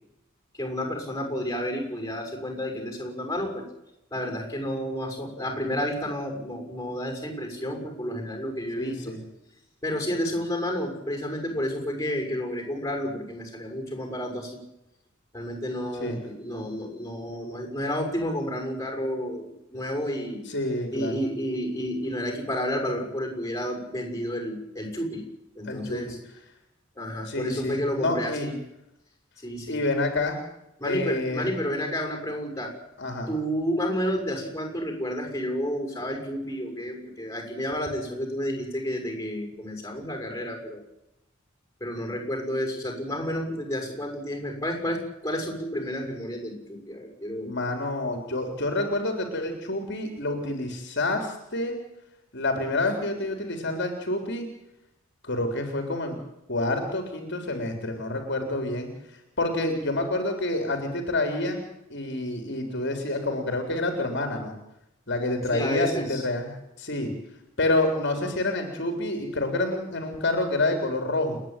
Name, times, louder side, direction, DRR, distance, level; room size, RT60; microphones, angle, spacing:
voice 1, 0.5-3.6 4.1-9.1 9.8-14.5 15.3-20.5 20.9-25.2 25.6-26.2 26.9-28.5 29.4-29.8 30.8-32.7 33.3-40.8 41.8-47.5 65.5-66.2, equal, 15° left, 3 dB, 6.2 m, -31 dB
voice 2, 8.8-9.2 16.0-16.2 20.5-21.1 25.7-26.0 27.2-28.5 29.7-30.4 30.8-31.5 33.0-33.3 47.5-51.8 52.3-54.5 55.2-56.2 56.5-58.9 59.4-61.6 61.9-64.5 65.1-67.1 67.6-71.4, left 2 dB, 55° left, 4 dB, 3.6 m, -28 dB
29.5 x 10.5 x 9.1 m, 0.86 s
head